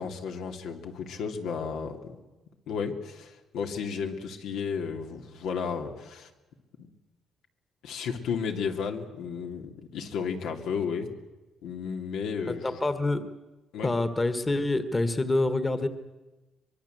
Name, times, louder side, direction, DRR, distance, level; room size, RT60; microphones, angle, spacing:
voice 1, 0.0-2.2 2.7-6.3 7.8-11.1 11.6-12.8 13.7-13.9, left 6 dB, 85° left, 4 dB, 2.6 m, -33 dB
voice 2, 12.5-13.3 13.8-15.9, left 2 dB, 20° left, 11 dB, 1.4 m, -27 dB
23.5 x 22.5 x 7.9 m, 1.1 s
cardioid pair, 135°, 0 cm